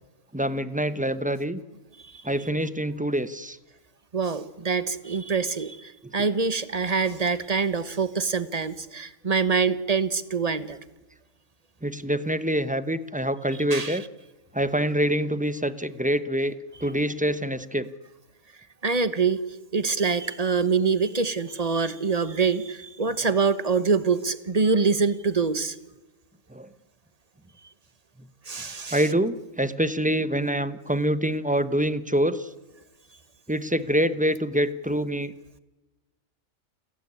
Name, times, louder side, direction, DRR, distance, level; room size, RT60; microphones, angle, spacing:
voice 1, 0.3-1.6 2.2-3.6 11.8-14.0 14.5-16.5 16.8-17.9 26.5-26.7 28.2-28.3 28.9-32.5 33.5-35.3, right 1 dB, 5° right, 13 dB, 0.8 m, -25 dB
voice 2, 4.1-10.8 13.7-14.0 18.8-19.5 19.7-25.8 28.5-29.0, right 5 dB, 30° right, 14 dB, 1.2 m, -25 dB
29.0 x 13.5 x 10.0 m, 1.1 s
omnidirectional pair, 1.4 m